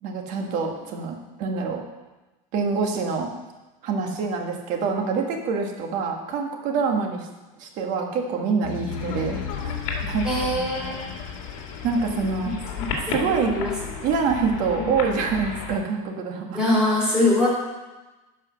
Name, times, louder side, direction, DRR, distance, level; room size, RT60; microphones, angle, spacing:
voice 1, 0.0-1.8 2.5-3.3 3.8-7.3 7.6-9.7 10.0-10.3 11.8-12.5 13.1-13.5 14.0-16.6, right 5 dB, 45° right, 3 dB, 1.6 m, -26 dB
sound 1, 8.6-13.0, left 7 dB, 80° left, 1.5 m, -35 dB
sound 2, 8.9-15.8, left 5 dB, 60° left, 2.1 m, -34 dB
voice 2, 10.2-11.2 12.4-12.5 13.1-13.9 14.8-14.9 16.5-17.5, left 1 dB, 5° right, -6 dB, 3.3 m, -23 dB
11.0 x 5.4 x 6.3 m, 1.1 s
supercardioid pair, 155°, 17 cm